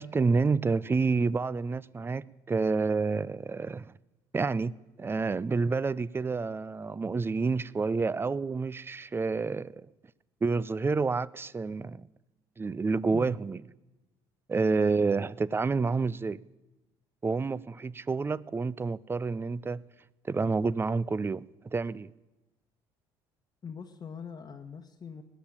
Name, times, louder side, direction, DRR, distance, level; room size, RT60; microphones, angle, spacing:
voice 1, 0.0-3.9 4.3-9.9 10.4-12.0 12.6-13.6 14.5-16.4 17.2-19.8 20.3-21.5 21.7-22.1, right 4 dB, 20° right, 0.4 m, -29 dB
voice 2, 13.1-13.4 23.6-25.2, left 6 dB, 35° left, 1.1 m, -42 dB
18.5 x 7.2 x 10.0 m
supercardioid pair, 75°, 11 cm